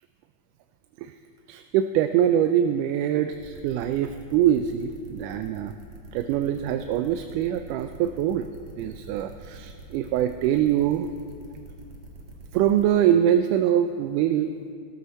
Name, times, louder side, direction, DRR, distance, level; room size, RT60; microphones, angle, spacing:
voice 1, 1.5-5.7 6.1-8.5 8.8-11.1 12.5-14.5, right 10 dB, 90° right, 8 dB, 2.1 m, -23 dB
sound 1, 3.3-12.8, right 3 dB, 55° right, 2.7 m, -45 dB
17.0 x 14.0 x 4.2 m, 2.4 s
omnidirectional pair, 3.6 m